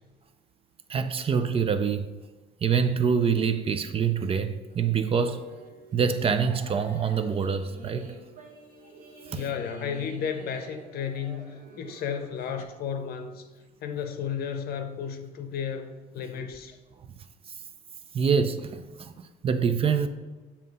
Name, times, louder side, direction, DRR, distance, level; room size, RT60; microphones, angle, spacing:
voice 1, 0.9-2.1 2.6-5.4 5.9-8.1 9.3-9.4 18.1-20.1, right 6 dB, 35° right, 0.4 m, -25 dB
sound 1, 4.7-12.7, right 3 dB, 50° right, 1.2 m, -47 dB
voice 2, 9.3-13.4 13.8-16.7, left 7 dB, 65° left, 0.7 m, -33 dB
7.2 x 2.8 x 5.3 m
cardioid pair, 110°, 17 cm